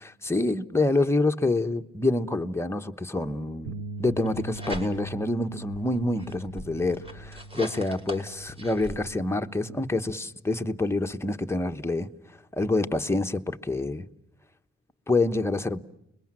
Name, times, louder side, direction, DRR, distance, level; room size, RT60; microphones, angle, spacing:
voice 1, 0.0-3.7 4.0-14.1 15.1-15.8, left 2 dB, 10° left, 1.1 m, -27 dB
sound 1, 3.7-9.9, right 2 dB, 75° right, 1.3 m, -41 dB
sound 2, 4.1-5.3 5.7-9.0, equal, 20° right, 5.5 m, -41 dB
30.0 x 22.0 x 7.6 m
cardioid pair, 90°, 30 cm